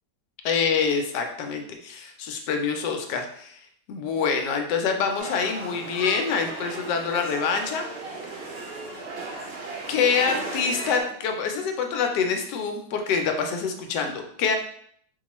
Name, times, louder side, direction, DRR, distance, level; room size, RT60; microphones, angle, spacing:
voice 1, 0.4-3.6 3.9-7.9 9.9-14.6, left 6 dB, 85° left, 4 dB, 1.2 m, -26 dB
sound 1, 5.2-11.0, right 2 dB, 60° right, 0.6 m, -36 dB
4.2 x 2.3 x 3.0 m, 0.65 s
omnidirectional pair, 1.8 m